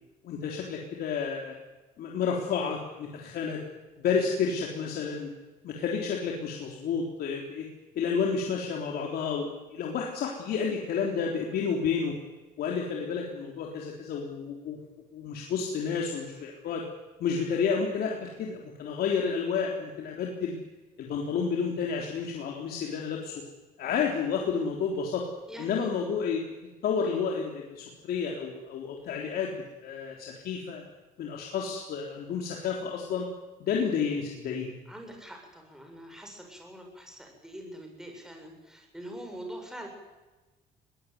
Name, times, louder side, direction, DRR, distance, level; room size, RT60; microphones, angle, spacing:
voice 1, 0.2-1.5 2.0-3.6 4.0-5.3 5.6-7.7 8.0-12.1 12.6-14.8 15.1-16.8 17.2-20.6 21.0-23.3 23.8-25.2 25.6-26.4 26.8-29.5 29.8-30.8 31.2-33.3 33.6-34.7, left 6 dB, 65° left, 0 dB, 3.8 m, -30 dB
voice 2, 25.5-25.9 27.1-27.2 34.9-39.9, right 1 dB, 5° right, 3 dB, 7.2 m, -44 dB
21.5 x 19.0 x 9.6 m, 1.2 s
cardioid pair, 110°, 17 cm